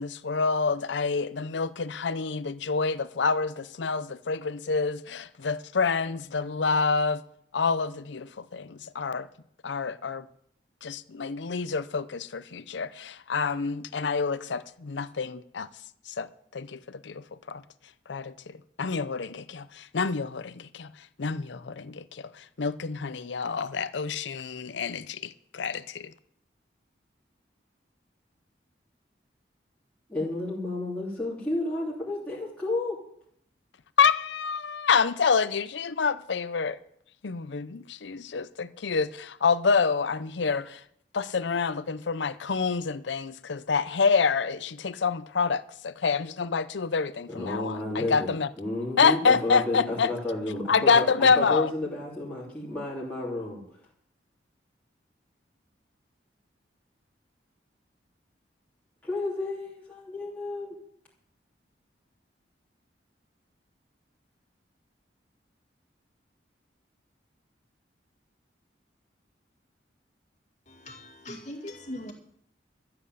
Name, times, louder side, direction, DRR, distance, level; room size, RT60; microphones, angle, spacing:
voice 1, 0.0-7.2 7.5-9.3 9.6-10.3 10.8-15.7 16.1-17.6 18.1-26.1 34.0-36.8 37.2-40.8 41.1-48.5 49.0-50.1 50.7-51.7, left 5 dB, 75° left, 0.6 m, -27 dB
voice 2, 30.1-33.0 47.3-53.9 59.0-60.8, left 2 dB, 10° left, 3.1 m, -31 dB
voice 3, 70.7-72.1, left 1 dB, 40° left, 2.3 m, -40 dB
14.0 x 7.8 x 7.7 m
head